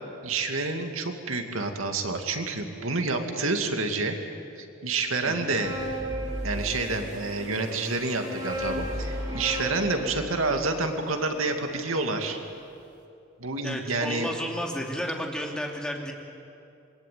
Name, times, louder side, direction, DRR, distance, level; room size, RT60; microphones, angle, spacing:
voice 1, 0.2-4.1 4.6-5.7 6.4-12.4 13.4-14.3, right 3 dB, 85° right, 4 dB, 2.5 m, -28 dB
sound 1, 5.2-7.1 7.9-12.1, right 1 dB, 20° right, 2.5 m, -37 dB
sound 2, 5.8-10.9, equal, 40° right, 6.5 m, -38 dB
voice 2, 13.6-16.1, equal, 5° left, 0 dB, 2.7 m, -32 dB
27.0 x 22.5 x 9.5 m, 2.6 s
head